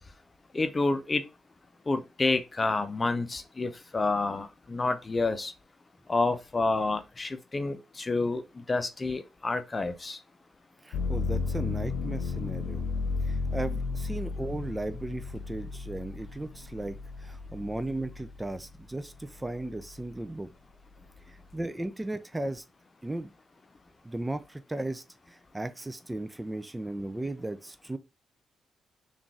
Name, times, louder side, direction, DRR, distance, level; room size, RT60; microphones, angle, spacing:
voice 1, 0.5-1.2 1.9-5.5 6.1-8.4 8.7-10.2, left 3 dB, 35° left, 0.6 m, -29 dB
voice 2, 10.8-12.8 13.3-20.5 21.3-22.6 23.0-23.3 24.0-28.0, right 2 dB, 15° right, 0.4 m, -36 dB
sound 1, 10.9-18.7 19.2-20.0, left 4 dB, 80° left, 0.3 m, -34 dB
3.7 x 2.5 x 3.3 m
hypercardioid pair, 45°, 0 cm